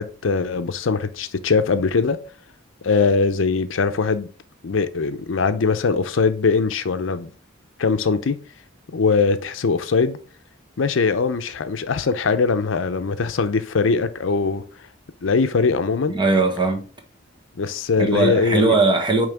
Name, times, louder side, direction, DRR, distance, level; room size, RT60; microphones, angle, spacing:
voice 1, 0.0-2.2 2.8-4.3 4.6-7.3 7.8-8.4 8.9-10.2 10.8-14.6 15.2-16.1 17.5-18.8, left 4 dB, 75° left, 0.6 m, -21 dB
voice 2, 16.1-16.8 18.0-19.3, right 3 dB, 25° right, 1.4 m, -19 dB
8.8 x 3.2 x 3.4 m
head